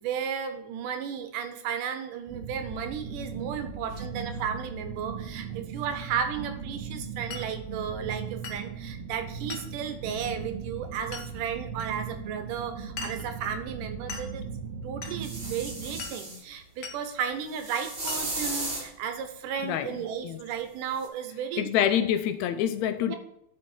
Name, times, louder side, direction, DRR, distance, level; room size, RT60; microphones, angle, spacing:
voice 1, 0.0-14.5 14.8-21.9 23.1-23.2, right 7 dB, 90° right, 2.6 m, -34 dB
sound 1, 2.3-16.1, right 6 dB, 65° right, 1.9 m, -38 dB
Glass, 7.3-7.5 8.4-8.7 9.5-9.7 11.1-11.3 11.8-11.9 13.0-13.3 14.1-14.3 15.0-15.2 16.0-16.2 16.8-17.0 18.1-18.3, left 6 dB, 60° left, 1.0 m, -39 dB
sound 2, 15.2-16.4 17.5-18.9 21.0-21.1, right 2 dB, 30° right, 1.2 m, -35 dB
voice 2, 21.6-23.2, left 10 dB, 80° left, 1.6 m, -26 dB
12.0 x 5.7 x 4.5 m
omnidirectional pair, 3.6 m